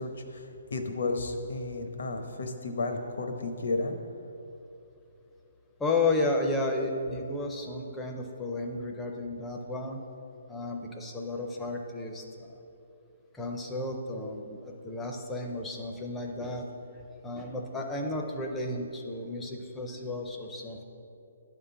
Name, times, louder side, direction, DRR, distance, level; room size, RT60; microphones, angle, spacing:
voice 1, 0.0-3.9, left 3 dB, 70° left, 5 dB, 0.9 m, -33 dB
voice 2, 5.8-10.0 10.5-12.5 13.3-16.6 17.2-20.8, left 2 dB, 5° left, 1 dB, 0.5 m, -32 dB
9.1 x 3.7 x 6.9 m, 2.7 s
hypercardioid pair, 175°, 0 cm